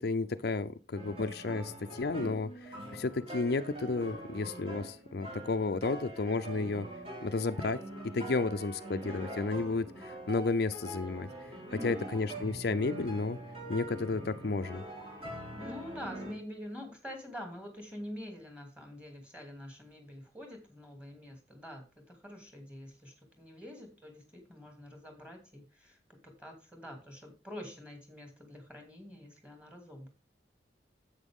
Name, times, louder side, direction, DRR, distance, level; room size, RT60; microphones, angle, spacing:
voice 1, 0.0-6.9 7.2-7.8 8.1-11.3 11.8-13.4 13.7-14.8, left 3 dB, 60° left, 9 dB, 0.5 m, -32 dB
sound 1, 0.9-16.3, right 1 dB, 35° right, 3.4 m, -43 dB
voice 2, 11.7-12.2 15.5-26.0 26.4-30.1, equal, 5° right, 4 dB, 2.6 m, -46 dB
10.0 x 8.1 x 3.6 m, 0.30 s
head